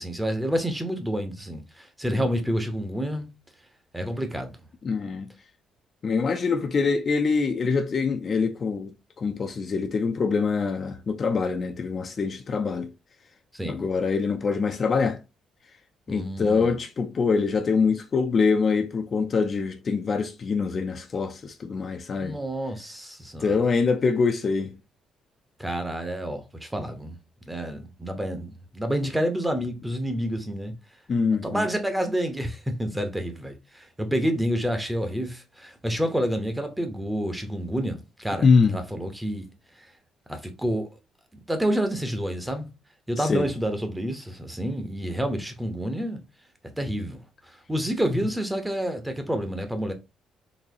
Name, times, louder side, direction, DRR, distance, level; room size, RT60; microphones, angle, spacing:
voice 1, 0.0-3.3 3.9-4.5 13.5-13.9 16.1-16.7 22.2-23.6 25.6-27.2 27.5-30.7 31.4-39.4 40.3-40.9 41.3-42.7 43.1-46.2 46.8-49.9, equal, 5° right, 0.8 m, -29 dB
voice 2, 4.8-5.3 6.0-8.9 9.2-12.9 13.7-15.2 16.1-22.4 23.4-24.7 31.1-31.7 38.4-38.8 43.3-43.5, left 5 dB, 40° left, 0.5 m, -24 dB
4.0 x 2.8 x 2.7 m
cardioid pair, 110°, 0 cm